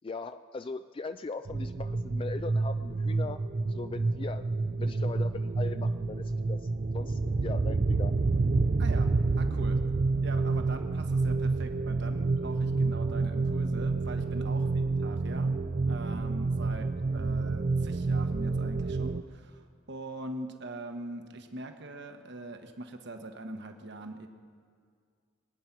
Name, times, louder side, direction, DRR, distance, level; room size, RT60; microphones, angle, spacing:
voice 1, 0.0-3.4 3.7-4.4 4.8-8.2 16.8-16.9, left 4 dB, 25° left, 10 dB, 0.3 m, -39 dB
sound 1, 1.5-19.2, right 3 dB, 40° right, 0.5 m, -29 dB
voice 2, 8.8-9.8 10.2-15.5 15.9-16.9 17.1-24.3, right 1 dB, 60° right, 6 dB, 1.2 m, -42 dB
23.0 x 9.5 x 6.0 m, 2.1 s
head